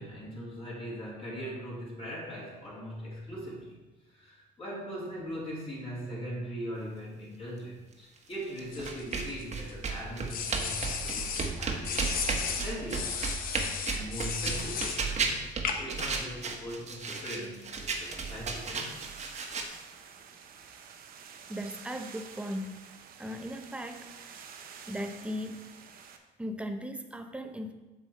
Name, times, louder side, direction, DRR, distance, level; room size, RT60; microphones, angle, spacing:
voice 1, 0.0-3.8 4.1-12.0 12.6-13.2 13.9-15.5 15.7-19.2, equal, 35° left, -6 dB, 3.1 m, -40 dB
sound 1, 8.6-19.6, right 4 dB, 40° right, 1.1 m, -34 dB
sound 2, 8.7-9.7 10.3-11.5 11.8-15.1 15.6-16.0, left 6 dB, 60° left, 1.0 m, -34 dB
sound 3, 17.7-26.2, right 7 dB, 60° right, 0.8 m, -49 dB
voice 2, 21.5-22.9 23.2-24.4 24.9-25.7 26.4-27.7, equal, 5° right, 6 dB, 0.7 m, -38 dB
7.9 x 6.1 x 4.5 m, 1.1 s
cardioid pair, 110°, 17 cm